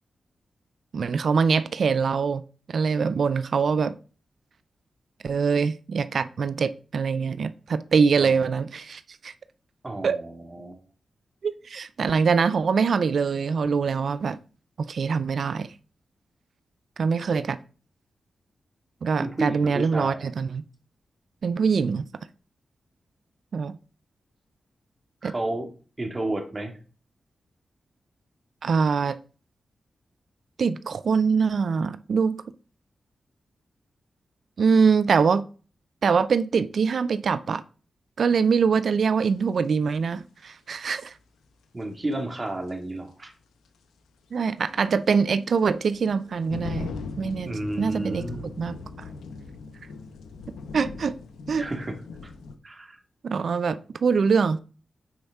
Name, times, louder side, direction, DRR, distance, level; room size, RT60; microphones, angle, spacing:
voice 1, 0.9-2.4 2.7-3.9 5.2-9.3 10.0-10.2 11.4-14.4 14.8-15.7 17.0-17.6 19.0-20.6 21.4-22.0 23.5-23.8 25.2-25.3 28.6-29.2 30.6-32.4 34.6-35.4 36.0-37.6 38.2-41.1 44.3-46.9 47.2-47.5 47.8-48.2 48.6-49.1 50.7-51.2 51.5-51.7 53.2-54.6, right 5 dB, 70° right, 0.4 m, -23 dB
voice 2, 9.8-10.8 19.2-20.3 25.2-25.7 26.0-26.8 41.7-43.3 47.4-48.5 51.6-52.0 52.2-52.3 52.6-53.0, right 1 dB, 35° right, 2.0 m, -32 dB
sound 1, 39.5-39.7 42.1-42.2 42.7-42.8 44.3-52.6, left 4 dB, 90° left, 0.8 m, -39 dB
9.5 x 4.3 x 3.5 m
supercardioid pair, 45°, 0 cm